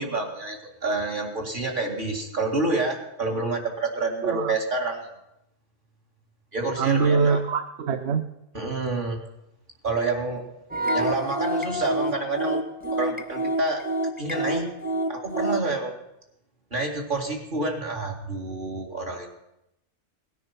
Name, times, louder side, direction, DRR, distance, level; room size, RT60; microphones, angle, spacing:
voice 1, 0.0-5.0 6.5-7.4 8.5-9.2 9.8-10.4 10.9-12.6 12.9-13.8 14.2-15.9 16.7-19.3, right 3 dB, 40° right, 1 dB, 2.4 m, -28 dB
voice 2, 4.2-4.5 6.8-8.3, right 5 dB, 60° right, 8 dB, 1.0 m, -23 dB
sound 1, 10.7-15.7, right 1 dB, 10° right, 0.8 m, -27 dB
18.0 x 10.0 x 5.8 m, 0.87 s
omnidirectional pair, 1.3 m